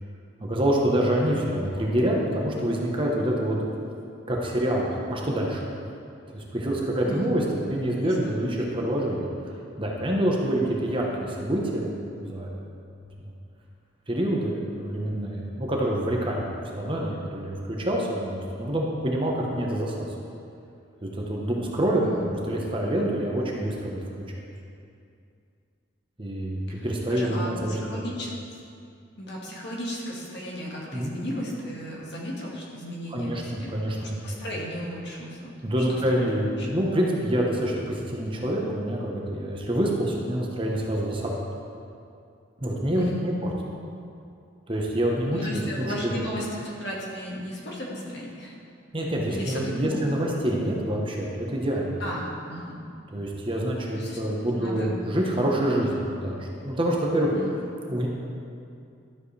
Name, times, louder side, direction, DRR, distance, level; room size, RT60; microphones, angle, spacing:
voice 1, 0.4-3.6 4.3-5.6 6.3-9.3 9.8-11.9 12.2-12.6 14.1-20.1 21.0-24.0 26.2-28.0 30.9-31.1 33.1-34.4 35.6-41.3 42.6-43.3 44.7-46.1 48.9-51.9 53.1-57.3 57.9-58.1, right 1 dB, 25° right, -2 dB, 1.0 m, -26 dB
voice 2, 7.1-7.6 8.0-8.1 22.0-22.3 26.7-28.3 29.2-33.7 34.0-35.5 35.9-36.2 36.6-36.7 42.9-43.3 45.3-48.5 49.3-50.1 52.0-52.8 53.9-54.2 54.5-54.9 57.3-57.5, equal, 60° left, -4 dB, 1.8 m, -35 dB
12.5 x 7.6 x 3.3 m, 2.5 s
head